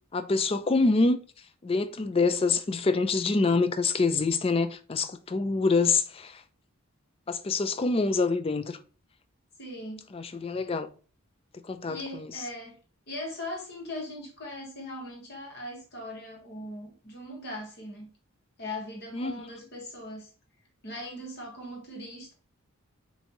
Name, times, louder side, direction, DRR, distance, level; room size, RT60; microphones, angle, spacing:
voice 1, 0.1-1.2 1.6-6.4 7.3-8.8 10.1-10.9 11.7-12.4 19.1-19.3, left 3 dB, 25° left, 0.3 m, -26 dB
voice 2, 9.6-10.1 11.9-12.8 13.1-18.1 18.6-20.3 20.8-22.3, left 1 dB, 50° left, 1.5 m, -39 dB
6.1 x 2.6 x 2.9 m
head